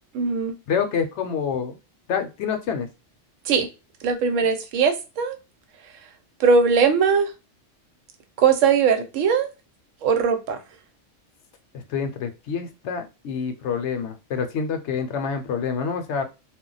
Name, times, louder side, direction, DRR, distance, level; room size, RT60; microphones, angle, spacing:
voice 1, 0.1-0.5 3.5-3.7 4.0-5.4 6.4-7.3 8.4-9.5 10.0-10.6, right 5 dB, 90° right, 1.0 m, -20 dB
voice 2, 0.7-1.7 2.1-2.9 11.7-16.2, left 6 dB, 70° left, 0.8 m, -27 dB
2.2 x 2.1 x 3.8 m
omnidirectional pair, 1.3 m